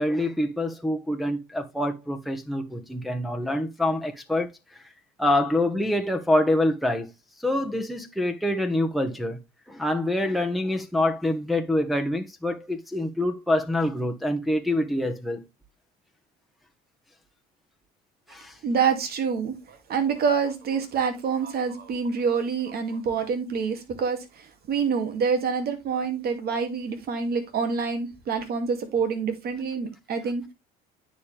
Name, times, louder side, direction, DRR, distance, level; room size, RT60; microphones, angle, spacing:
voice 1, 0.0-4.5 5.2-7.1 7.4-9.4 9.7-15.5 18.3-18.6, left 1 dB, ahead, 1.3 m, -26 dB
voice 2, 18.6-30.5, right 6 dB, 55° right, 2.4 m, -27 dB
9.4 x 5.2 x 3.4 m
supercardioid pair, 80°, 19 cm